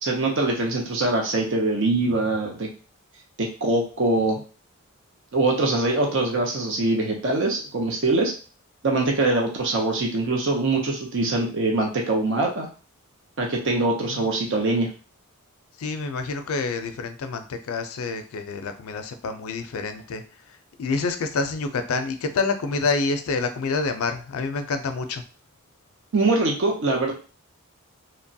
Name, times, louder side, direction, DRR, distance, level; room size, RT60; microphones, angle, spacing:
voice 1, 0.0-2.7 3.4-4.4 5.3-8.3 8.8-12.7 13.4-14.9 26.1-27.1, right 2 dB, 55° right, 0 dB, 0.6 m, -23 dB
voice 2, 15.8-20.2 20.5-25.2, left 4 dB, 70° left, 8 dB, 0.4 m, -28 dB
2.8 x 2.2 x 2.6 m, 0.36 s
head